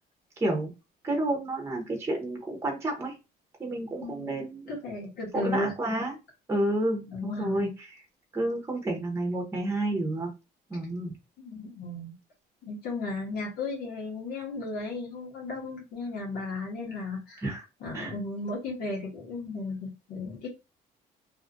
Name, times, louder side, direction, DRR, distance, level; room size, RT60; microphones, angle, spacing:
voice 1, 0.4-0.7 1.0-3.1 3.6-4.8 5.3-6.1 6.5-7.7 8.3-10.3 10.7-11.1 17.4-17.6 17.9-18.1, right 1 dB, 15° right, 2 dB, 0.8 m, -30 dB
voice 2, 4.0-5.7 7.1-7.7 11.4-12.1 12.6-17.4 17.8-20.5, left 2 dB, 75° left, -2 dB, 1.2 m, -35 dB
2.7 x 2.4 x 2.6 m, 0.26 s
cardioid pair, 110°, 17 cm